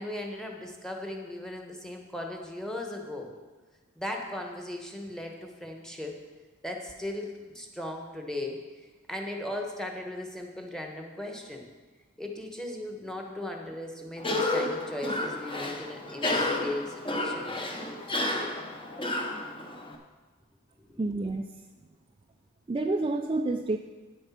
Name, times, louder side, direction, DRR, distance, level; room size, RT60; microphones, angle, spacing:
voice 1, 0.0-3.3 4.0-6.2 6.6-8.6 9.1-11.7 12.2-17.5 20.9-21.1, left 1 dB, 5° left, 2 dB, 1.1 m, -37 dB
Cough, 14.2-20.0, left 2 dB, 25° left, 1.0 m, -31 dB
voice 2, 21.0-21.5 22.7-23.8, right 2 dB, 25° right, 4 dB, 0.3 m, -28 dB
9.2 x 7.8 x 5.8 m, 1.3 s
head